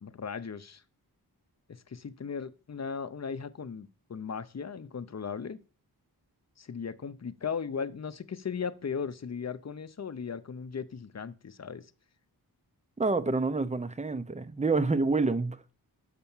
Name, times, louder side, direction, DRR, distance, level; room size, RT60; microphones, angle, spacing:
voice 1, 0.0-0.8 1.7-5.6 6.6-11.9, left 6 dB, 45° left, 0.7 m, -37 dB
voice 2, 13.0-15.6, right 3 dB, 20° right, 0.7 m, -27 dB
6.8 x 5.7 x 7.1 m
wide cardioid pair, 85°, 39 cm